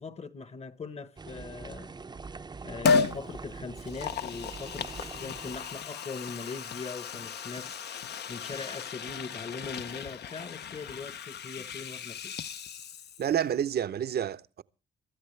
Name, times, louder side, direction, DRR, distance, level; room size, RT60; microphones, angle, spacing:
voice 1, 0.0-2.0 2.6-7.8 8.3-12.4, left 4 dB, 30° left, 1.2 m, -41 dB
sound 1, 1.2-5.8, right 4 dB, 20° right, 0.6 m, -43 dB
Liquid, 2.8-3.2 3.8-13.4 13.7-13.8, left 5 dB, 55° left, 0.8 m, -34 dB
voice 2, 13.2-14.6, right 9 dB, 55° right, 0.8 m, -29 dB
23.5 x 13.0 x 3.2 m
cardioid pair, 90°, 20 cm